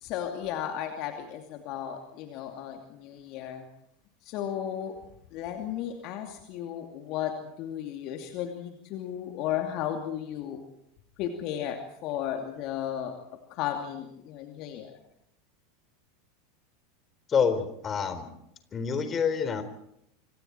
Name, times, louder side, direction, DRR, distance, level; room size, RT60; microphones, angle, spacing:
voice 1, 0.0-3.7 4.2-5.0 5.3-10.6 11.2-13.2 13.5-15.0, left 10 dB, 50° left, 4 dB, 2.6 m, -34 dB
voice 2, 17.3-18.3 18.7-19.6, left 6 dB, 30° left, 10 dB, 3.9 m, -27 dB
26.5 x 26.0 x 4.5 m, 0.75 s
figure-of-eight pair, 85°, 0 cm